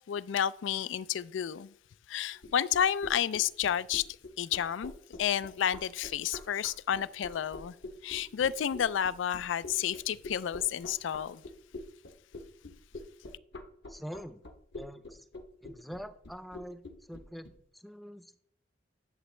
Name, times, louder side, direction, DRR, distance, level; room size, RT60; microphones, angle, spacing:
voice 1, 0.1-1.7 2.1-4.0 4.4-4.9 5.2-7.7 8.0-11.4, left 9 dB, 80° left, 0.3 m, -31 dB
sound 1, 2.4-17.5, left 2 dB, 60° left, 0.9 m, -44 dB
voice 2, 13.9-14.4 14.7-15.3 15.6-18.4, equal, ahead, 0.4 m, -45 dB
11.0 x 6.9 x 3.2 m
head